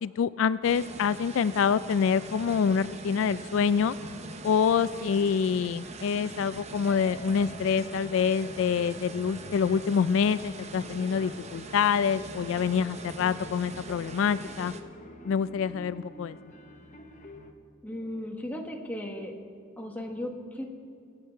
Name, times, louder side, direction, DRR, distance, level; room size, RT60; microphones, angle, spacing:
voice 1, 0.0-4.0 4.4-14.7 15.3-16.4, left 6 dB, 80° left, 16 dB, 0.3 m, -26 dB
sound 1, 0.6-14.8, right 3 dB, 35° right, 0.7 m, -43 dB
sound 2, 6.8-17.5, left 1 dB, 40° left, 0.9 m, -48 dB
voice 2, 17.8-19.3 19.8-20.7, left 1 dB, 10° left, 1 dB, 1.3 m, -36 dB
23.0 x 8.5 x 4.5 m, 2.5 s
head